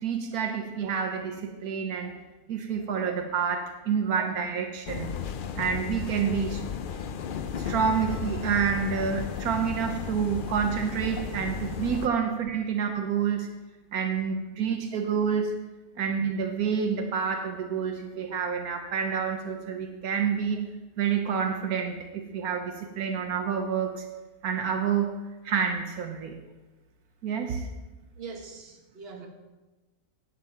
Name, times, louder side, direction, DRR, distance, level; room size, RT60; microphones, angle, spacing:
voice 1, 0.0-2.1 2.5-5.1 5.5-6.6 7.6-13.5 13.9-15.5 16.0-20.7 21.0-24.1 24.4-25.1 25.4-26.4 27.2-27.7, right 7 dB, 80° right, 5 dB, 1.3 m, -28 dB
sound 1, 4.9-12.1, left 7 dB, 80° left, 0.4 m, -34 dB
voice 2, 28.2-29.3, right 5 dB, 45° right, 3 dB, 1.5 m, -43 dB
9.3 x 8.0 x 5.7 m, 1.1 s
omnidirectional pair, 1.6 m